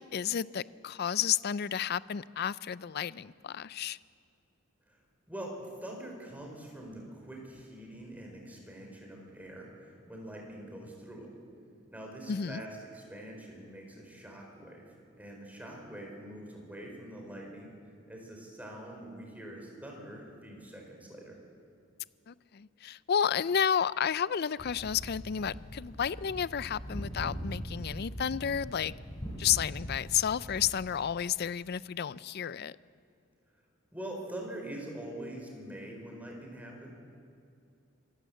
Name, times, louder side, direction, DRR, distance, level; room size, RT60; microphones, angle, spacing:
voice 1, 0.0-4.0 12.3-12.6 22.3-28.9 29.4-32.8, left 8 dB, 50° left, 0.4 m, -31 dB
voice 2, 5.3-11.3 11.9-17.7 18.1-21.4 33.9-36.9, right 1 dB, 10° right, 4.5 m, -44 dB
sound 1, 24.6-30.7, equal, 20° left, 4.2 m, -41 dB
25.5 x 15.5 x 7.8 m
head